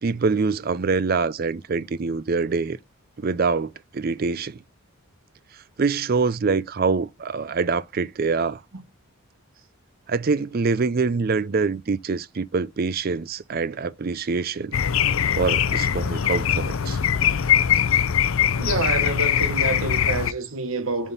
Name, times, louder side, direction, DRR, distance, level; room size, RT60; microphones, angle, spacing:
voice 1, 0.0-2.8 3.2-4.6 5.8-8.6 10.1-14.8 15.3-17.0, right 4 dB, 40° right, 0.4 m, -25 dB
sound 1, 14.7-20.3, left 9 dB, 65° left, 0.5 m, -22 dB
voice 2, 18.6-21.1, right 2 dB, 65° right, 1.3 m, -27 dB
10.5 x 3.7 x 4.1 m
head